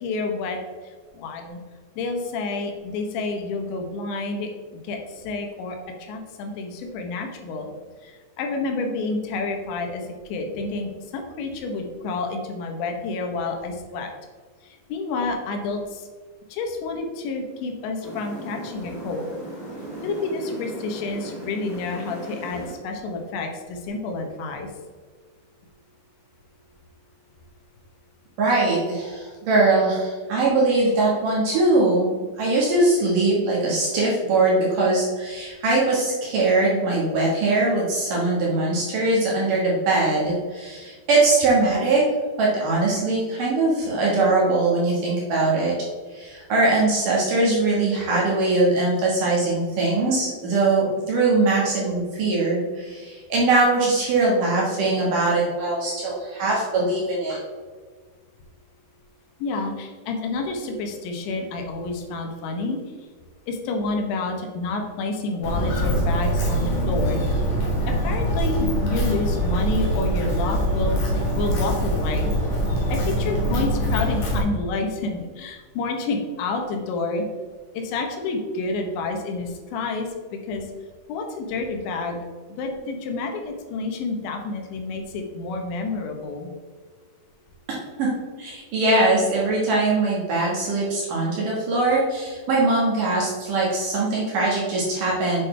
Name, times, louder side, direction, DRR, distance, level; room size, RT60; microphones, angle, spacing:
voice 1, 0.0-0.6 1.1-1.6 2.0-4.5 4.8-7.7 8.0-10.0 10.3-14.1 14.9-16.0 16.5-19.3 20.0-24.7 59.4-62.8 63.5-67.2 67.8-71.0 71.3-72.3 72.9-77.2 77.7-80.7 81.1-82.2 82.6-86.5, left 3 dB, 85° left, 3 dB, 3.3 m, -29 dB
sound 1, 18.0-22.7, right 1 dB, 25° left, 1.3 m, -37 dB
voice 2, 28.4-32.1 32.4-42.0 42.4-45.7 46.1-57.4 88.0-88.1 88.4-95.4, right 2 dB, 60° right, -4 dB, 2.5 m, -21 dB
Walk footsteps, 65.4-74.4, equal, 55° left, 2.0 m, -23 dB
8.3 x 6.6 x 3.3 m, 1.5 s
omnidirectional pair, 5.2 m